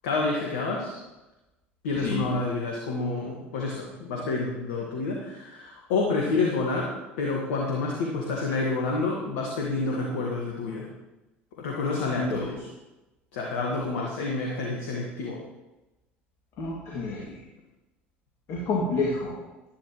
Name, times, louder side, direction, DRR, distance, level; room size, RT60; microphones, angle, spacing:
voice 1, 0.0-1.0 1.8-10.9 11.6-12.7 13.3-15.4, left 3 dB, 65° left, -1 dB, 1.7 m, -28 dB
voice 2, 2.0-2.3 12.2-12.4 16.6-17.4 18.5-19.3, left 3 dB, 50° left, -4 dB, 2.4 m, -29 dB
12.0 x 11.0 x 3.1 m, 1.0 s
figure-of-eight pair, 65°, 7 cm